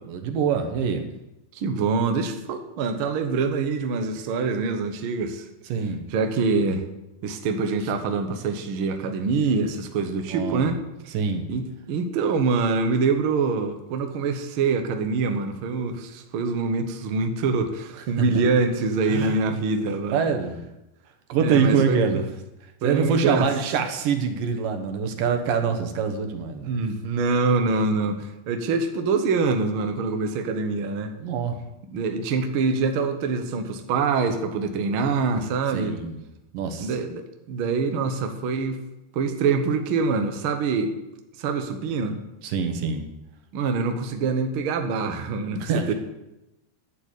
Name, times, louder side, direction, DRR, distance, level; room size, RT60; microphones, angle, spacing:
voice 1, 0.1-1.0 5.7-6.0 10.3-10.7 11.1-11.5 18.2-18.3 19.1-19.3 20.1-20.6 21.3-22.2 22.8-26.7 31.2-31.6 35.7-36.2 36.5-36.9 42.4-43.0 45.6-45.9, right 6 dB, 90° right, 6 dB, 2.9 m, -24 dB
voice 2, 1.5-5.5 6.1-6.9 7.2-10.8 11.5-20.3 21.4-22.2 22.8-23.5 26.6-31.2 31.9-36.0 36.8-38.8 39.1-40.9 41.4-42.2 43.5-45.9, right 4 dB, 60° right, 6 dB, 1.4 m, -25 dB
11.0 x 7.4 x 8.3 m, 0.95 s
omnidirectional pair, 3.7 m